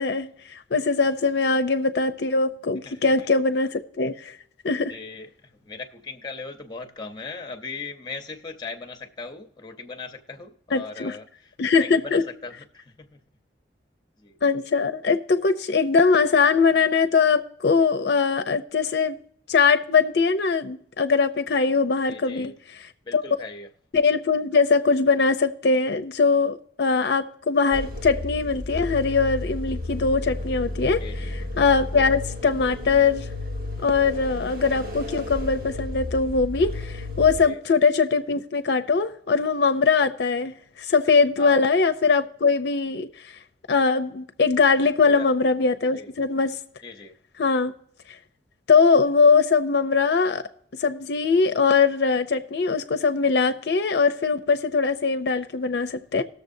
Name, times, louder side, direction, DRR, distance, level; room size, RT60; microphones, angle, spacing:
voice 1, 0.0-4.3 4.6-4.9 10.7-11.2 11.6-12.2 14.4-19.2 19.5-22.5 23.1-23.2 23.9-31.0 31.3-33.3 33.8-40.5 40.9-43.1 43.7-46.6 47.4-47.7 48.7-50.4 50.8-56.2, left 4 dB, 70° left, 0.5 m, -21 dB
voice 2, 2.8-3.3 4.9-11.5 11.8-13.1 14.2-14.4 22.0-22.5 23.0-23.7 31.0-31.4 37.4-37.6 41.4-41.6 45.0-45.3 45.9-46.1 46.8-47.2, left 4 dB, 25° left, 0.7 m, -38 dB
sound 1, 27.7-37.5, left 2 dB, 55° right, 1.2 m, -32 dB
19.0 x 6.8 x 2.6 m
head